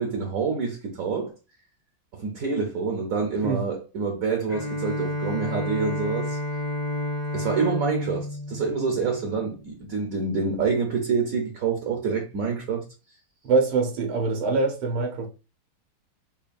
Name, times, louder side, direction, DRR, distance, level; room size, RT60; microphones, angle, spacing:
voice 1, 0.0-1.3 2.1-6.4 7.3-12.8, right 5 dB, 65° right, 0.8 m, -27 dB
Bowed string instrument, 4.5-9.7, left 1 dB, 35° left, 0.7 m, -31 dB
voice 2, 13.4-15.3, right 4 dB, 85° right, 1.9 m, -24 dB
5.4 x 2.3 x 2.5 m
omnidirectional pair, 2.3 m